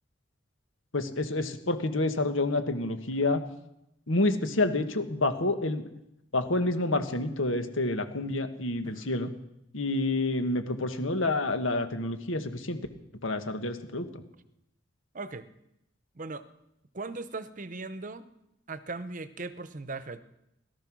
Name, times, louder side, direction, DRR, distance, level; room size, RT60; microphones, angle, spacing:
voice 1, 0.9-3.4 4.1-5.9 6.3-9.3 9.7-12.8 13.2-14.2, left 2 dB, 80° left, 8 dB, 1.6 m, -28 dB
voice 2, 15.1-15.5 16.1-16.4 16.9-18.3 18.7-20.2, right 3 dB, 40° right, 13 dB, 0.9 m, -38 dB
17.5 x 13.0 x 6.2 m, 0.85 s
head